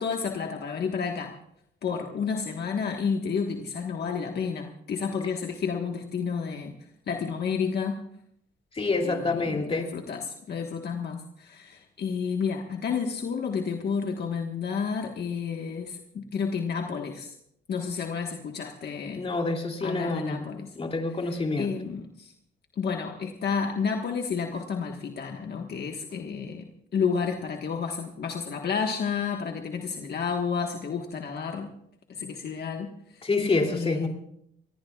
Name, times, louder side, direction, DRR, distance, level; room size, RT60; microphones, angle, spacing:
voice 1, 0.0-1.3 1.8-6.8 7.1-8.0 9.0-17.3 17.7-19.2 19.8-20.7 21.2-22.3 22.8-26.6 26.9-31.7 32.1-33.3 33.7-34.1, left 6 dB, 55° left, 3 dB, 1.5 m, -31 dB
voice 2, 8.7-9.9 19.2-21.7 33.2-34.1, left 3 dB, 30° left, 3 dB, 2.9 m, -27 dB
24.5 x 18.0 x 2.4 m, 0.73 s
cardioid pair, 90°, 20 cm